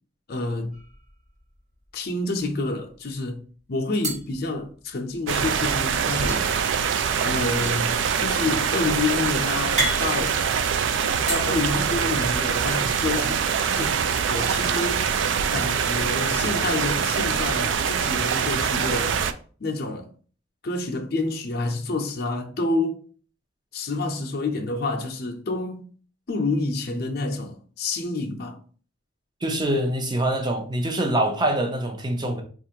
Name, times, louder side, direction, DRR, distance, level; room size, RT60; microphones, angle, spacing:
voice 1, 0.3-0.7 1.9-3.4 3.7-6.4 7.2-10.4 11.3-14.0 14.3-15.1 15.5-19.2 19.6-20.1 20.6-23.0 23.7-25.9 26.3-28.6, left 3 dB, 55° left, 0.6 m, -28 dB
sound 1, 0.7-1.6 1.9-2.1 2.4-3.1 4.0-5.3 6.3-11.4, right 1 dB, 40° right, 1.3 m, -33 dB
sound 2, 5.3-19.3, right 7 dB, 80° right, 0.3 m, -24 dB
voice 2, 29.4-32.4, right 1 dB, 25° right, 0.6 m, -24 dB
4.3 x 2.4 x 2.8 m
head